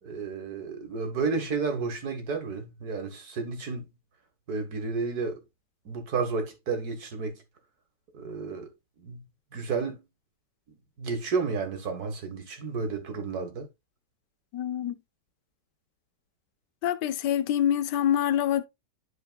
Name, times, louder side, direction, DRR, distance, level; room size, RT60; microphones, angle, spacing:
voice 1, 0.0-3.9 4.5-5.4 5.9-7.4 8.1-8.7 9.0-9.2 9.5-10.0 11.0-13.7, right 4 dB, 60° right, 2.0 m, -31 dB
voice 2, 14.5-14.9 16.8-18.6, left 10 dB, 75° left, 1.2 m, -25 dB
11.5 x 4.6 x 2.2 m
omnidirectional pair, 1.9 m